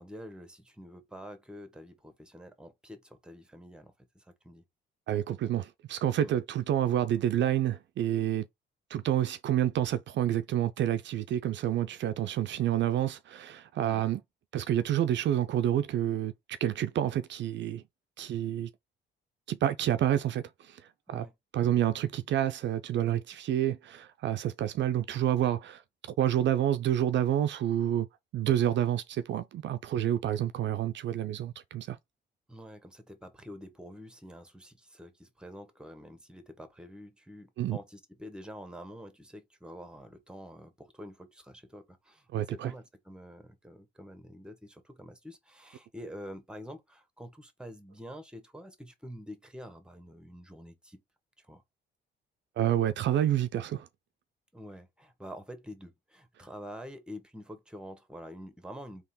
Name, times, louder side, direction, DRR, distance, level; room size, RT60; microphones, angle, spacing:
voice 1, 0.0-4.7 6.2-6.4 13.8-14.0 21.1-21.3 32.5-51.0 51.4-51.6 54.5-59.0, equal, 5° right, 1.2 m, -47 dB
voice 2, 5.1-8.4 8.9-14.2 14.5-17.8 18.2-18.7 19.5-20.8 21.1-21.3 21.5-25.8 26.2-28.1 28.3-32.0 37.6-37.8 42.3-42.7 52.6-53.9, right 11 dB, 65° right, 0.5 m, -28 dB
3.6 x 3.0 x 4.2 m
cardioid pair, 90°, 20 cm